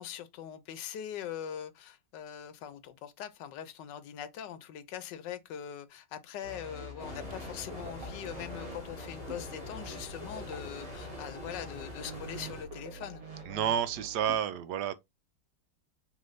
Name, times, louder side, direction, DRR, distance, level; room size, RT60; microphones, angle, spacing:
voice 1, 0.0-13.2, left 9 dB, 85° left, 1.3 m, -42 dB
sound 1, 6.4-14.4, equal, 55° right, 1.5 m, -45 dB
sound 2, 7.0-12.6, left 1 dB, 25° left, 1.6 m, -45 dB
voice 2, 13.5-15.0, right 9 dB, 75° right, 1.1 m, -30 dB
3.3 x 3.2 x 3.8 m
omnidirectional pair, 1.8 m